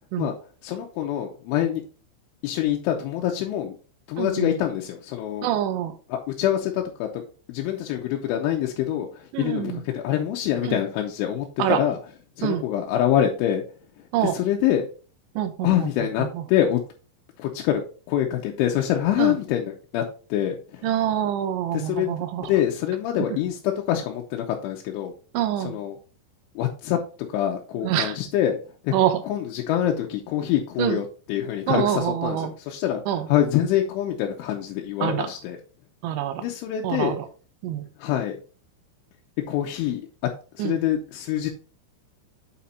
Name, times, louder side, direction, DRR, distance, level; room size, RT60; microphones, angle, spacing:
voice 1, 0.6-1.8 2.4-3.8 4.1-5.5 6.1-7.1 7.5-12.0 12.4-13.6 14.2-14.8 15.6-16.8 17.4-17.8 18.1-20.1 20.3-20.9 21.7-25.1 25.6-26.0 26.6-27.0 27.3-28.6 28.8-28.9 29.3-33.0 33.3-35.6 36.4-37.2 38.0-38.4 39.5-40.0 40.6-41.5, left 11 dB, 85° left, 3.2 m, -25 dB
voice 2, 4.2-4.6 5.4-5.9 9.3-9.8 10.6-10.8 11.6-11.8 12.4-12.6 14.1-14.4 15.4-16.4 19.2-19.4 20.8-22.5 25.3-25.8 27.8-28.2 28.9-29.2 30.8-31.0 31.7-32.5 33.1-33.3 35.0-35.3 36.0-36.5 36.8-37.3 37.6-37.8 40.6-40.8, right 11 dB, 80° right, 3.0 m, -26 dB
8.3 x 4.4 x 4.0 m
omnidirectional pair, 5.5 m